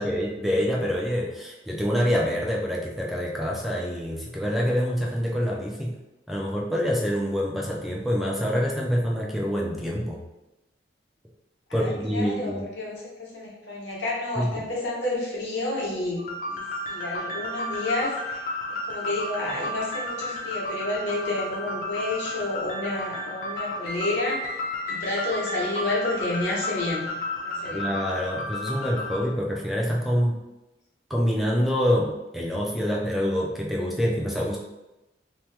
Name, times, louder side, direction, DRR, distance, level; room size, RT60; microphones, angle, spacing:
voice 1, 0.0-5.9 6.3-10.2 11.7-12.6 14.4-14.5 27.7-30.4 31.1-34.6, equal, ahead, -3 dB, 0.3 m, -26 dB
voice 2, 11.7-18.4 18.7-24.6 24.9-27.1 27.4-27.9, left 2 dB, 80° left, -4 dB, 1.0 m, -30 dB
sound 1, 16.2-29.2, left 1 dB, 45° left, 0.5 m, -32 dB
2.9 x 2.1 x 3.2 m, 0.99 s
head